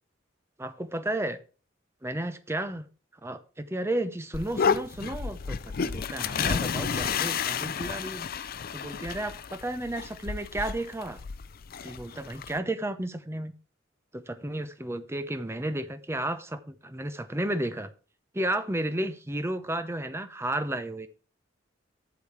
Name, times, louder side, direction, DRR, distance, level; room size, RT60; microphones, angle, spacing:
voice 1, 0.6-1.4 2.0-2.8 3.2-8.3 8.7-11.2 11.8-13.5 14.1-17.9 18.3-21.1, right 1 dB, 15° right, 0.7 m, -33 dB
sound 1, 4.3-12.6, left 6 dB, 50° left, 0.5 m, -31 dB
8.4 x 7.0 x 4.5 m
head